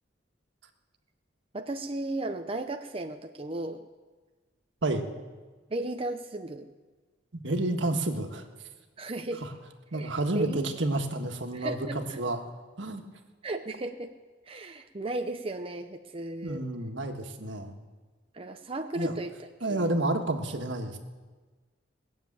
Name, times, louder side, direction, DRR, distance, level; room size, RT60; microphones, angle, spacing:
voice 1, 1.5-3.9 4.8-5.1 5.7-6.7 9.0-9.4 9.9-10.7 11.5-12.2 13.4-14.1 14.5-16.7 18.3-19.3 19.7-19.8, right 2 dB, 30° right, 6 dB, 0.7 m, -35 dB
voice 2, 7.3-8.4 9.9-12.4 12.8-13.0 16.4-17.7 18.9-19.1 19.6-21.0, right 2 dB, 85° right, 4 dB, 1.6 m, -30 dB
20.0 x 7.3 x 8.7 m, 1.3 s
head